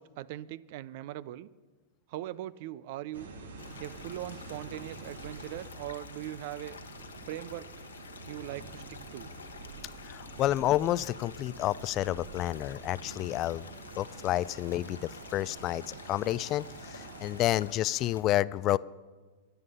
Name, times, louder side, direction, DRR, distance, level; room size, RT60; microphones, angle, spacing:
voice 1, 0.0-1.5 2.1-3.3 3.8-6.8 7.3-7.7 8.3-9.3, right 14 dB, 55° right, 21 dB, 0.5 m, -40 dB
sound 1, 3.1-17.6, right 3 dB, 75° right, 1.6 m, -47 dB
sound 2, 3.6-18.2, left 6 dB, 80° left, 1.1 m, -50 dB
voice 2, 10.0-13.6 14.0-18.8, left 14 dB, 40° left, 20 dB, 0.3 m, -30 dB
23.0 x 8.0 x 5.5 m, 1.3 s
hypercardioid pair, 100°, 0 cm